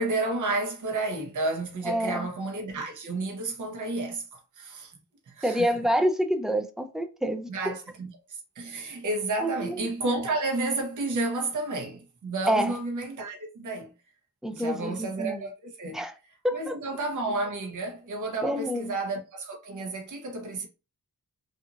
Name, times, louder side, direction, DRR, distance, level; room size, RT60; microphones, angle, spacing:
voice 1, 0.0-4.9 5.3-5.8 7.5-13.9 14.5-16.0 16.5-20.7, right 2 dB, 55° right, 0.8 m, -31 dB
voice 2, 1.8-2.3 5.4-7.5 9.4-9.9 12.5-12.8 14.4-15.4 15.9-16.1 16.4-16.8 18.4-18.9, equal, ahead, 0.3 m, -27 dB
2.7 x 2.6 x 2.5 m
cardioid pair, 80°, 37 cm